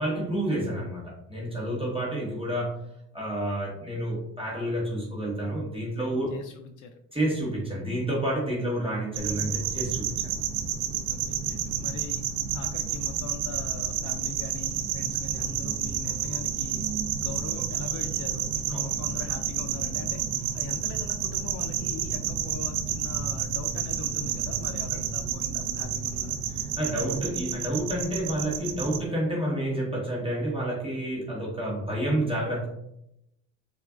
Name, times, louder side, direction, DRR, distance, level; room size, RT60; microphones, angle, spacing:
voice 1, 0.0-2.8 3.1-6.3 7.1-10.4 18.7-18.8 26.5-32.7, right 1 dB, 10° right, -5 dB, 1.2 m, -29 dB
voice 2, 6.3-7.0 11.1-12.2 12.5-16.9 17.2-20.2 20.5-26.4, left 6 dB, 45° left, 5 dB, 0.4 m, -41 dB
sound 1, 9.1-29.0, right 8 dB, 75° right, 0.6 m, -30 dB
4.3 x 2.4 x 2.4 m, 0.79 s
hypercardioid pair, 75°, 47 cm